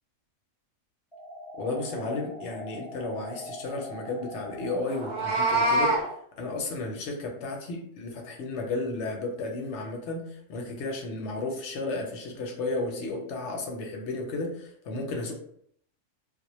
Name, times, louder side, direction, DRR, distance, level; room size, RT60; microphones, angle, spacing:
sound 1, 1.1-6.1, right 1 dB, 40° left, 0.4 m, -42 dB
voice 1, 1.6-6.0 6.4-10.2 10.5-15.3, left 2 dB, 65° left, 1 dB, 0.8 m, -33 dB
Meow, 4.9-6.0, right 2 dB, 45° right, 0.7 m, -24 dB
2.1 x 2.0 x 2.9 m, 0.66 s
omnidirectional pair, 1.4 m